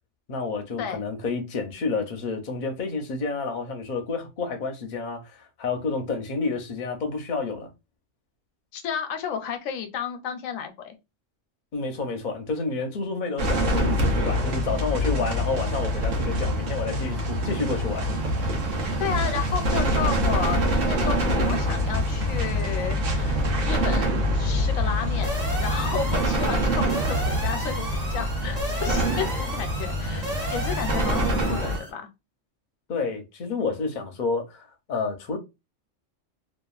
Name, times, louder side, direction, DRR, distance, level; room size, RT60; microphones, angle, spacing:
voice 1, 0.3-7.7 11.7-18.4 32.9-35.4, left 4 dB, 50° left, 0.6 m, -30 dB
voice 2, 8.7-11.0 19.0-32.1, left 7 dB, 90° left, 1.0 m, -32 dB
sound 1, 13.4-31.8, equal, 75° right, 1.1 m, -25 dB
sound 2, 25.2-31.9, equal, 35° right, 1.0 m, -34 dB
2.9 x 2.3 x 2.3 m
omnidirectional pair, 1.3 m